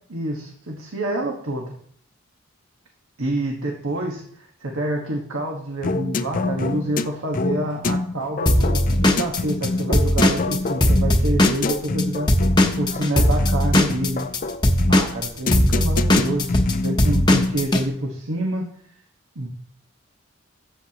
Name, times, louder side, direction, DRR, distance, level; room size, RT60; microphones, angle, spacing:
voice 1, 0.1-1.7 3.2-12.4 12.8-14.3 14.9-16.6 16.8-18.7 19.3-19.5, right 1 dB, 80° right, 0 dB, 1.4 m, -27 dB
sound 1, 5.8-17.6, left 3 dB, 40° left, 0.4 m, -26 dB
Drum kit / Drum, 8.5-12.0 12.3-17.8, left 1 dB, 20° left, 0.9 m, -18 dB
14.0 x 7.5 x 2.9 m, 0.63 s
head